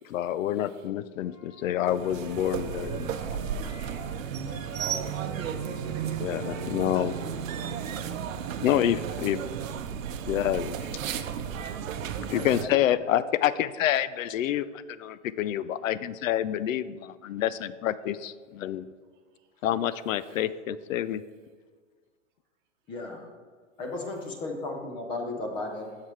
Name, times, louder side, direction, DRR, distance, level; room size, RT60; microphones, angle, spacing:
voice 1, 0.1-3.3 6.2-7.1 8.6-9.4 10.3-10.8 12.3-18.9 19.6-21.2, left 11 dB, 90° left, 16 dB, 0.5 m, -28 dB
Wind instrument woodwind instrument, 1.2-4.2 4.4-7.6, left 2 dB, 30° left, 1.1 m, -47 dB
sound 1, 1.8-12.7, right 8 dB, 90° right, 0.7 m, -34 dB
voice 2, 4.8-5.4 6.3-7.7 20.2-20.4, right 3 dB, 40° right, 1 dB, 1.0 m, -43 dB
voice 3, 12.3-12.8 22.9-23.2 23.8-26.0, left 2 dB, 15° left, 3 dB, 0.5 m, -35 dB
9.0 x 6.6 x 3.2 m, 1.5 s
hypercardioid pair, 155°, 38 cm